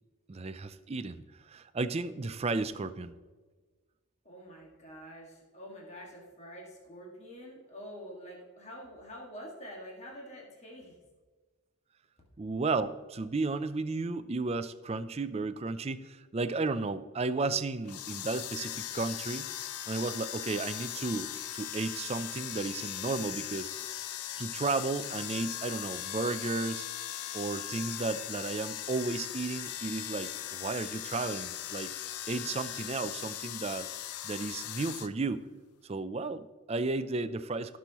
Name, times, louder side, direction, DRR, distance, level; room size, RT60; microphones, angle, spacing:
voice 1, 0.3-3.1 12.4-19.5 19.9-23.7 24.4-26.9 27.3-31.9 32.3-33.9 34.2-35.4 35.8-37.8, right 3 dB, 30° right, 11 dB, 0.4 m, -33 dB
voice 2, 4.2-11.0, equal, 30° left, -2 dB, 1.9 m, -47 dB
sound 1, 17.8-35.1, left 11 dB, 90° left, 0.6 m, -39 dB
17.0 x 6.2 x 3.0 m, 1.3 s
head